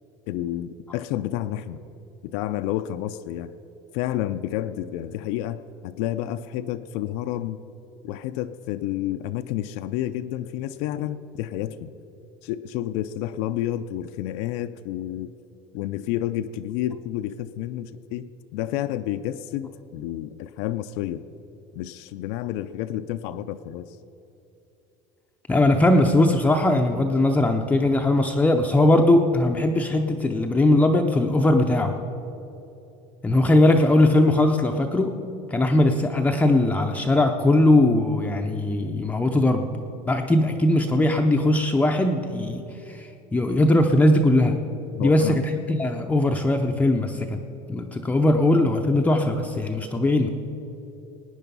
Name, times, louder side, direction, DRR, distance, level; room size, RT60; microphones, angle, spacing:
voice 1, 0.3-1.8 2.2-3.5 3.9-7.6 8.0-11.9 12.4-15.3 15.7-21.2 21.7-24.0 44.9-45.4, left 12 dB, 70° left, 9 dB, 0.5 m, -30 dB
voice 2, 25.5-31.9 33.2-35.1 35.5-39.7 40.1-44.6 45.0-47.4 47.7-50.3, left 1 dB, 10° left, 3 dB, 0.6 m, -20 dB
18.5 x 9.3 x 5.4 m, 3.0 s
cardioid pair, 155°, 15 cm